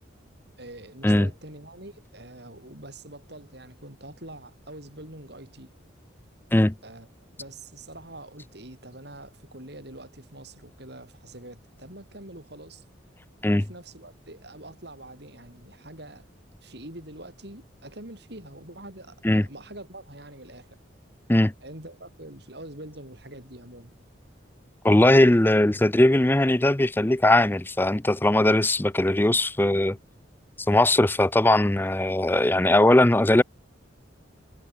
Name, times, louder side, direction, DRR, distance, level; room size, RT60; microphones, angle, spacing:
voice 1, 0.6-5.7 6.8-12.8 13.5-16.3 16.6-20.8 21.6-23.9, right 1 dB, 55° right, 7.4 m, -44 dB
voice 2, 24.8-30.0 30.7-33.4, left 1 dB, 10° left, 0.5 m, -19 dB
head